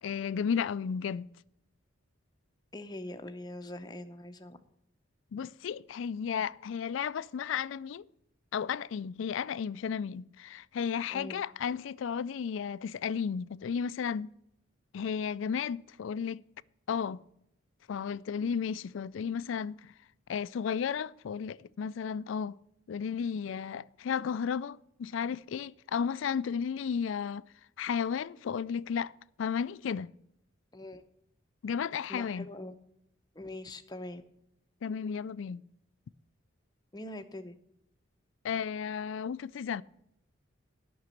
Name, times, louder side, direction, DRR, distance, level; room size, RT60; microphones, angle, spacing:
voice 1, 0.0-1.3 5.3-8.0 8.5-14.3 14.9-16.4 16.9-17.2 17.9-19.9 20.3-22.6 22.9-27.4 27.8-29.1 29.4-30.1 31.6-32.5 34.8-35.6 38.4-39.8, left 7 dB, 70° left, 0.3 m, -33 dB
voice 2, 2.7-4.6 11.1-11.4 30.7-31.0 32.1-32.7 33.3-34.2 36.9-37.5, left 1 dB, 20° left, 0.7 m, -42 dB
9.6 x 6.1 x 7.4 m
head